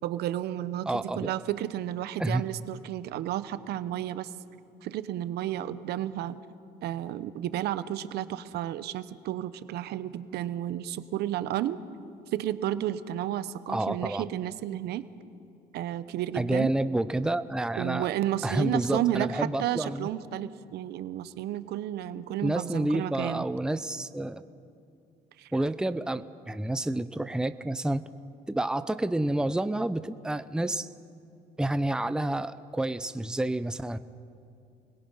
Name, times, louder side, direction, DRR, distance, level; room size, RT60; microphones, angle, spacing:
voice 1, 0.0-4.3 4.8-6.4 6.8-11.8 12.3-15.1 15.7-16.7 17.8-23.4 25.4-25.5, right 12 dB, 75° right, 13 dB, 0.9 m, -32 dB
voice 2, 0.9-1.3 2.2-2.4 13.7-14.2 16.3-18.1 18.4-20.1 22.4-24.4 25.5-28.0 28.5-30.9 31.6-34.0, right 1 dB, 5° right, 12 dB, 0.6 m, -29 dB
28.5 x 21.5 x 5.6 m, 2.6 s
cardioid pair, 110°, 17 cm